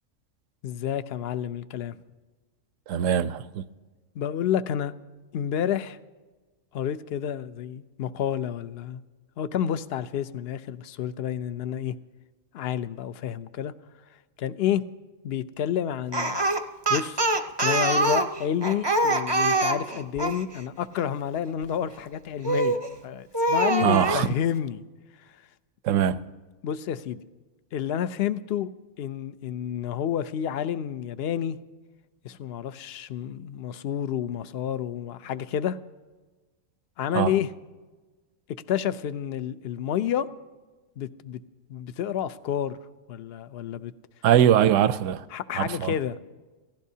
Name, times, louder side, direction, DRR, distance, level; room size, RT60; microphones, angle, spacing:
voice 1, 0.6-2.0 4.1-4.9 5.3-6.0 6.7-9.0 9.4-11.9 12.5-13.7 14.4-14.8 15.2-16.4 16.9-17.2 17.6-24.8 26.6-27.2 27.7-28.7 29.0-31.6 32.2-35.8 37.0-37.5 38.7-40.3 41.0-41.4 41.7-42.8 43.1-43.9 45.3-46.2, left 9 dB, 60° left, 0.7 m, -29 dB
voice 2, 2.9-3.6 23.8-24.3 25.8-26.2 37.1-37.3 44.2-45.2 45.6-45.9, right 10 dB, 70° right, 0.9 m, -21 dB
Speech, 16.1-20.4 22.4-22.9 23.3-24.2, right 2 dB, 25° right, 0.6 m, -24 dB
28.5 x 16.0 x 2.8 m
omnidirectional pair, 1.4 m